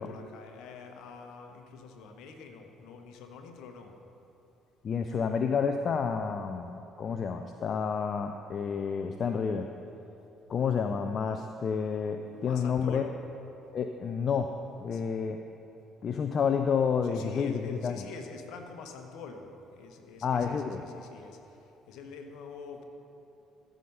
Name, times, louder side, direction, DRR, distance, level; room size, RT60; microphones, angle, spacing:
voice 1, 0.0-4.0 12.2-13.2 14.9-15.0 17.0-22.9, left 5 dB, 65° left, 5 dB, 1.0 m, -46 dB
voice 2, 4.8-9.7 10.5-13.1 13.7-14.5 14.8-15.4 16.0-18.0 20.2-20.8, left 6 dB, 45° left, 7 dB, 0.5 m, -30 dB
14.5 x 5.1 x 5.5 m, 2.9 s
hypercardioid pair, 50°, 0 cm